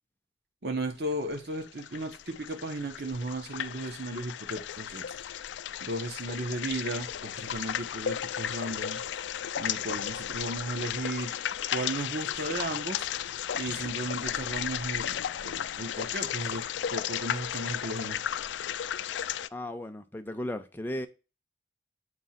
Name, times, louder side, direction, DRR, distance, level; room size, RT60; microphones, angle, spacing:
voice 1, 0.6-5.0 5.8-9.2 9.6-11.4 11.7-13.0 13.5-16.6 16.9-18.2, right 2 dB, 60° right, 1.0 m, -35 dB
sound 1, 1.3-19.5, left 10 dB, 75° left, 0.3 m, -34 dB
voice 2, 19.5-21.1, left 1 dB, 10° left, 0.6 m, -35 dB
8.0 x 2.9 x 5.7 m
head